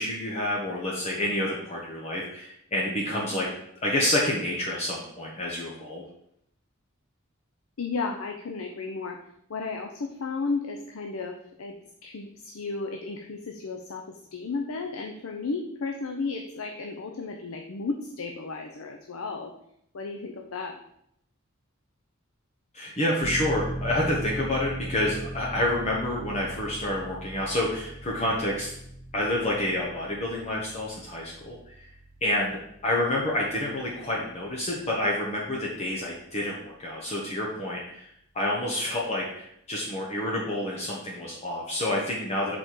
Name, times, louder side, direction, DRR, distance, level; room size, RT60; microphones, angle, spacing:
voice 1, 0.0-3.5 3.8-6.0 22.7-28.8 29.1-31.9 32.2-38.1 38.3-42.6, left 1 dB, 30° left, -3 dB, 1.1 m, -28 dB
voice 2, 7.8-9.2 9.5-11.8 12.0-14.0 14.3-19.5 19.9-20.8, left 4 dB, 85° left, 3 dB, 0.6 m, -33 dB
sound 1, 23.2-35.7 36.1-36.2, equal, 10° right, 1.3 m, -39 dB
6.7 x 4.3 x 4.5 m, 0.74 s
head